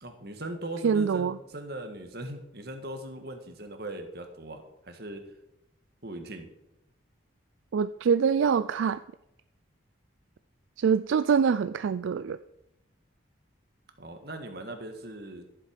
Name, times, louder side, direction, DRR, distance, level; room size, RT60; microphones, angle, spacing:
voice 1, 0.0-5.3 6.0-6.5 14.0-15.5, right 1 dB, 50° right, 6 dB, 1.6 m, -39 dB
voice 2, 0.8-1.4 7.7-9.0 10.8-12.4, right 6 dB, 75° right, 12 dB, 0.3 m, -24 dB
14.0 x 7.6 x 5.2 m, 0.88 s
head